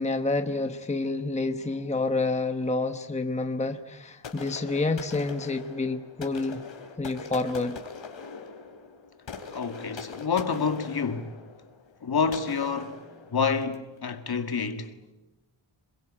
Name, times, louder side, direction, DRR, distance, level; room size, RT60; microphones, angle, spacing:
voice 1, 0.0-6.6 7.0-7.8, left 3 dB, 15° left, 1.0 m, -28 dB
sound 1, 4.2-13.9, left 5 dB, 70° left, 3.5 m, -42 dB
voice 2, 9.5-11.3 12.0-13.0 13.3-14.9, left 5 dB, 50° left, 2.0 m, -28 dB
27.0 x 22.5 x 8.8 m
wide cardioid pair, 160°, 47 cm